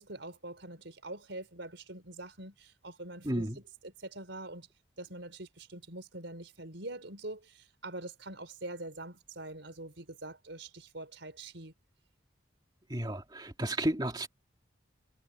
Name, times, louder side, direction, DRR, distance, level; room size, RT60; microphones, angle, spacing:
voice 1, 0.0-4.7 5.0-11.7, right 2 dB, 75° right, 4.2 m, -44 dB
voice 2, 3.2-3.6 12.9-14.3, right 1 dB, 20° right, 2.5 m, -32 dB
head